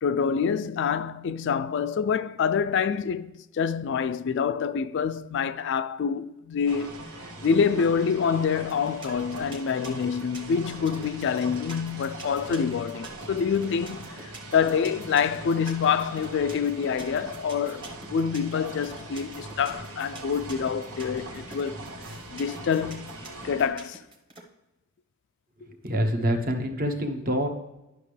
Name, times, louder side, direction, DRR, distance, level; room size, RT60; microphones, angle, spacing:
voice 1, 0.0-6.9 7.4-21.8 22.3-24.0, left 6 dB, 55° left, 0.3 m, -26 dB
sound 1, 6.7-23.7, right 2 dB, 75° right, 1.4 m, -41 dB
sound 2, 8.7-24.4, right 2 dB, 20° right, 1.1 m, -45 dB
voice 2, 25.8-27.5, equal, 40° right, 0.9 m, -26 dB
10.5 x 5.9 x 3.3 m
head